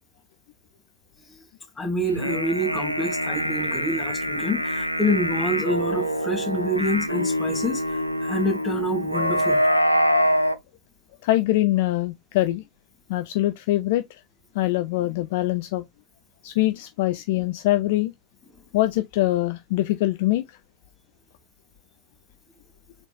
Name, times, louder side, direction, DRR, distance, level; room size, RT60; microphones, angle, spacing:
voice 1, 1.8-7.8 8.2-9.6, equal, 15° left, 2.0 m, -27 dB
sound 1, 2.1-10.6, equal, 90° right, 0.4 m, -25 dB
voice 2, 11.2-12.6 13.1-14.0 14.5-15.8 16.4-18.1 18.7-20.5, left 16 dB, 50° left, 0.4 m, -23 dB
5.7 x 4.0 x 2.3 m
figure-of-eight pair, 90°, 0 cm